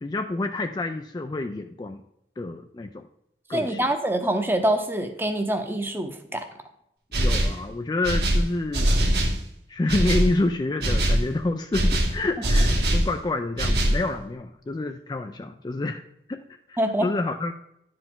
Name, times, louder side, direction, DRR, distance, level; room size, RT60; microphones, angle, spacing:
voice 1, 0.0-2.0 2.4-3.1 3.5-3.9 7.1-8.9 9.7-16.0 16.3-16.4 16.7-17.5, left 2 dB, 25° left, 6 dB, 0.3 m, -28 dB
voice 2, 3.5-6.4 12.4-12.5 16.8-17.1, right 1 dB, 15° right, 7 dB, 0.7 m, -25 dB
sound 1, 7.1-7.6 8.0-9.4 9.9-10.3 10.8-11.3 11.7-13.1 13.6-14.0, right 1 dB, 65° right, 1.5 m, -22 dB
10.5 x 5.0 x 3.7 m, 0.78 s
head